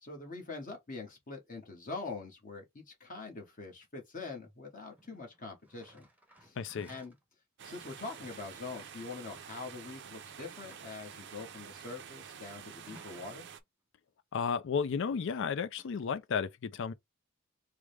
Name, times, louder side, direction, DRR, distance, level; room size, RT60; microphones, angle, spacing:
voice 1, 0.0-6.1 6.4-6.6 6.9-7.1 7.6-13.5, left 3 dB, 40° left, 1.2 m, -44 dB
sound 1, 5.0-7.2 7.8-8.5 10.0-10.1 10.5-11.2 12.7-13.6 14.9-15.4 15.7-15.9, right 1 dB, 10° right, 0.8 m, -59 dB
voice 2, 6.6-6.9 14.3-16.9, left 6 dB, 60° left, 0.4 m, -33 dB
sound 2, 7.6-13.6, right 8 dB, 60° right, 0.5 m, -49 dB
4.7 x 2.1 x 3.3 m
head